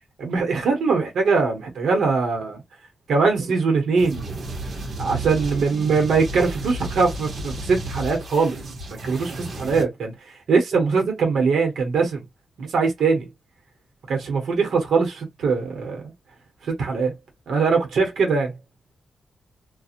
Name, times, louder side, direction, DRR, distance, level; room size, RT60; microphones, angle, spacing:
voice 1, 0.2-2.6 3.1-4.4 5.0-8.6 9.0-12.2 12.6-13.3 14.1-16.1 16.7-17.1 17.5-18.5, right 4 dB, 80° right, 1.0 m, -22 dB
sound 1, 4.0-9.8, right 2 dB, 50° right, 1.0 m, -33 dB
2.5 x 2.2 x 2.8 m
wide cardioid pair, 155°, 0 cm